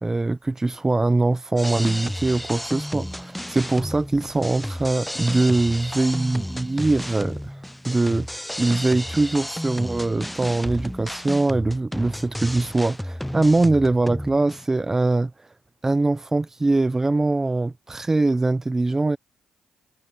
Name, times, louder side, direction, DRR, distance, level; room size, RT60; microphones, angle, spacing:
voice 1, 0.0-7.5 7.9-8.3 8.6-15.3 15.8-19.2, right 2 dB, 20° right, 0.9 m, -22 dB
sound 1, 1.6-14.6, equal, 5° left, 0.4 m, -32 dB
supercardioid pair, 65°, 2 cm